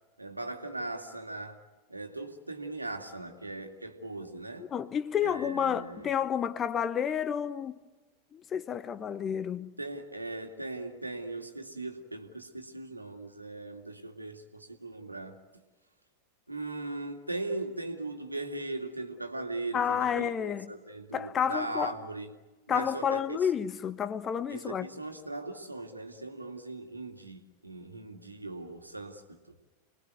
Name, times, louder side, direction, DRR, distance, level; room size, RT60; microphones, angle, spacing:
voice 1, 0.2-1.6 1.9-4.7 5.2-6.1 9.8-15.4 16.5-22.3 22.7-23.4 24.5-29.4, right 2 dB, 85° right, 2.4 m, -39 dB
voice 2, 4.6-7.8 8.3-9.7 19.7-20.7 21.1-21.9 22.7-24.9, left 8 dB, 25° left, 1.2 m, -30 dB
29.0 x 21.0 x 9.5 m
figure-of-eight pair, 90°, 0 cm